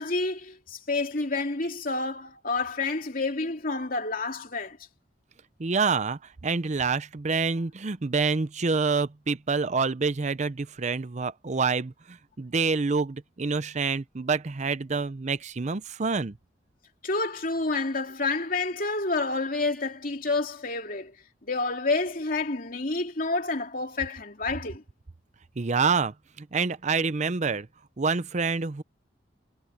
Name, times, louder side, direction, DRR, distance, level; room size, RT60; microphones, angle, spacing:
voice 1, 0.0-4.8 17.0-21.1 21.5-24.8, left 3 dB, 50° left, 3.0 m, -29 dB
voice 2, 5.6-11.9 12.4-16.3 25.6-27.7 28.0-28.8, right 4 dB, 40° right, 0.6 m, -27 dB
head